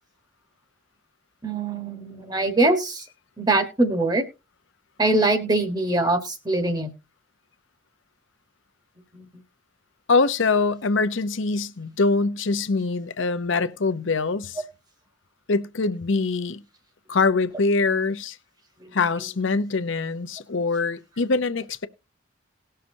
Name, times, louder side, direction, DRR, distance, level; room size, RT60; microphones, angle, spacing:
voice 1, 1.4-3.0 3.4-4.2 5.0-6.9 9.1-9.2, right 2 dB, 20° right, 1.2 m, -23 dB
voice 2, 10.1-14.6 15.5-16.6 17.1-18.4 18.9-21.9, left 3 dB, 65° left, 0.7 m, -23 dB
18.5 x 6.6 x 2.7 m
head